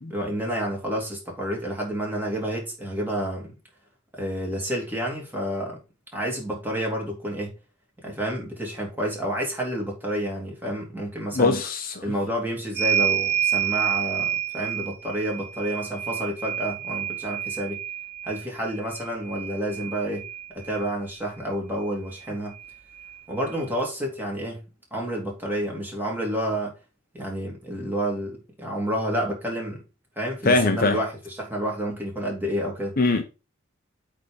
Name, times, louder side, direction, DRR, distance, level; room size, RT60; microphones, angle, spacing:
voice 1, 0.1-3.5 4.1-5.8 6.1-7.5 8.0-11.6 12.0-17.8 18.2-20.3 20.5-22.6 23.3-24.6 24.9-26.8 27.1-29.8 30.2-32.9, equal, 10° right, 2.8 m, -29 dB
voice 2, 11.3-12.0 30.4-31.0 33.0-33.2, left 3 dB, 50° left, 0.9 m, -21 dB
sound 1, 12.7-20.9 22.1-22.2 22.5-23.6, right 10 dB, 55° right, 1.5 m, -29 dB
8.4 x 3.7 x 5.2 m
head